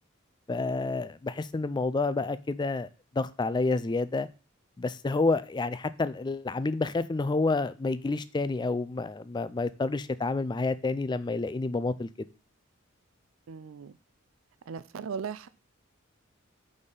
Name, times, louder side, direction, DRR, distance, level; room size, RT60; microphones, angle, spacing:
voice 1, 0.5-2.9 3.1-4.3 4.8-12.3, left 3 dB, 20° left, 0.3 m, -29 dB
voice 2, 13.5-14.0 14.7-15.5, right 6 dB, 80° right, 0.4 m, -37 dB
5.0 x 4.2 x 5.5 m
head